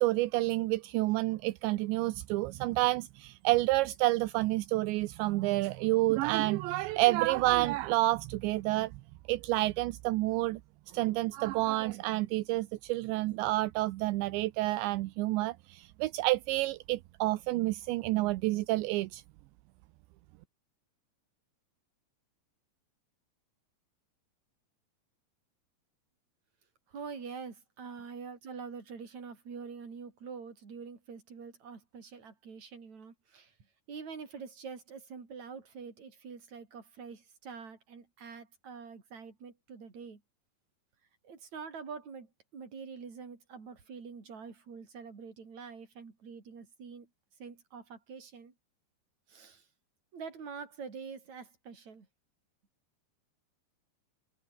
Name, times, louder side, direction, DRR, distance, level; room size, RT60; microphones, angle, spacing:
voice 1, 0.0-8.9 9.3-10.6 10.9-19.2, right 18 dB, 80° right, 3.1 m, -29 dB
voice 2, 26.9-33.5 33.9-40.2 41.2-47.1 47.4-48.5 49.3-49.7 50.1-52.1, right 5 dB, 40° right, 5.5 m, -45 dB
omnidirectional pair, 5.2 m